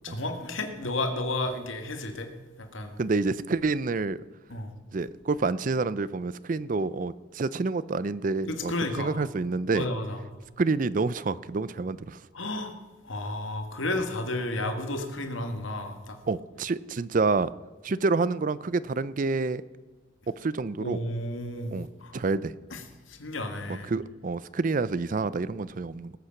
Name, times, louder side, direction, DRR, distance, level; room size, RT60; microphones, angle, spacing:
voice 1, 0.0-2.3 2.6-3.0 4.5-4.7 8.5-9.1 9.7-10.2 12.3-12.8 13.0-16.2 20.8-22.1 22.7-22.8 23.1-23.9, left 2 dB, 80° left, 5 dB, 1.8 m, -32 dB
voice 2, 3.0-4.2 4.9-8.7 9.0-9.9 10.6-12.2 16.3-17.5 17.8-19.6 20.3-21.0 21.7-21.9 22.1-22.5 23.7-26.1, right 3 dB, 40° right, 17 dB, 0.4 m, -28 dB
19.5 x 8.2 x 5.8 m, 1.3 s
head